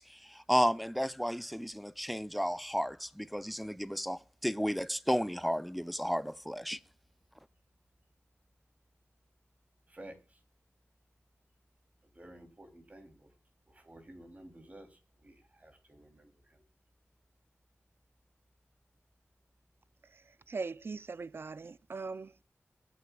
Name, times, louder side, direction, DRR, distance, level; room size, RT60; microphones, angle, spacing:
voice 1, 0.0-6.8, equal, ahead, 0.5 m, -33 dB
voice 2, 9.9-10.4 12.1-13.3 13.7-16.6, right 1 dB, 30° right, 3.2 m, -53 dB
voice 3, 20.1-22.4, right 4 dB, 55° right, 0.5 m, -41 dB
23.0 x 9.5 x 2.4 m
wide cardioid pair, 85°, 5 cm